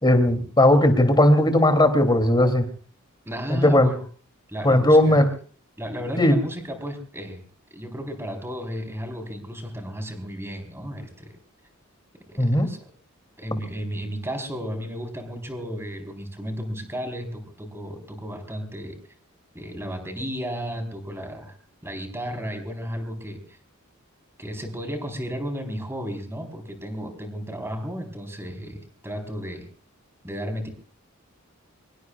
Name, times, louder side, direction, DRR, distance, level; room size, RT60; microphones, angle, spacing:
voice 1, 0.0-2.6 3.5-3.9 4.6-5.2 6.2-6.4 12.4-12.7, left 1 dB, 20° left, 7 dB, 2.8 m, -17 dB
voice 2, 3.3-4.0 4.5-5.2 5.8-7.4 7.7-11.3 12.3-12.8 13.4-19.0 19.5-21.5 21.8-23.6 24.4-29.7 30.2-30.7, equal, 10° right, 5 dB, 4.1 m, -33 dB
25.0 x 23.0 x 2.4 m, 0.42 s
head